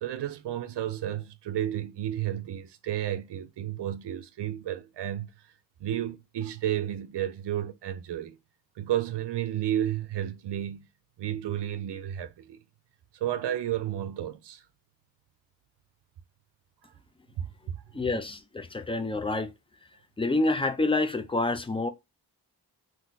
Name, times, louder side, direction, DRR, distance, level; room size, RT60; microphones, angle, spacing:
voice 1, 0.0-5.3 5.8-8.4 8.8-10.9 11.2-12.6 13.1-14.6 16.8-16.9 17.4-17.8, right 11 dB, 80° right, 0.5 m, -32 dB
voice 2, 17.9-19.5 20.2-21.9, left 2 dB, 15° left, 0.3 m, -27 dB
2.6 x 2.2 x 3.8 m
cardioid pair, 70°, 41 cm